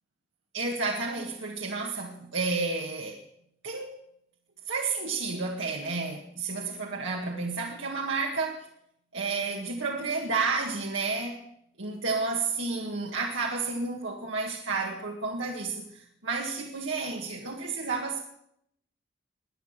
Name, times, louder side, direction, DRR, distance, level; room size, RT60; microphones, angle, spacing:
voice 1, 0.5-3.2 3.6-4.0 4.7-8.7 9.1-11.4 11.8-18.2, right 4 dB, 80° right, 0 dB, 1.8 m, -31 dB
20.0 x 10.5 x 6.7 m, 0.74 s
head